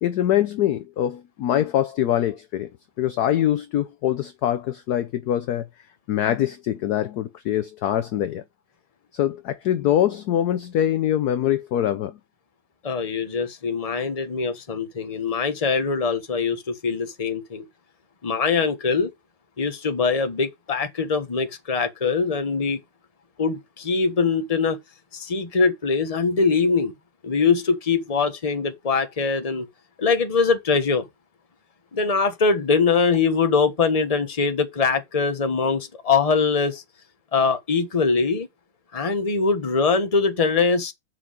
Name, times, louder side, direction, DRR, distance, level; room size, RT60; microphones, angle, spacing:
voice 1, 0.0-2.7 3.0-5.7 6.1-8.4 9.1-12.2, left 11 dB, 65° left, 1.0 m, -23 dB
voice 2, 12.8-17.6 18.2-19.1 19.6-22.8 23.4-24.8 25.1-26.9 27.2-29.7 30.0-31.1 31.9-36.8 37.3-38.5 38.9-40.9, left 4 dB, 20° left, 1.2 m, -22 dB
7.7 x 5.9 x 5.1 m
omnidirectional pair, 2.2 m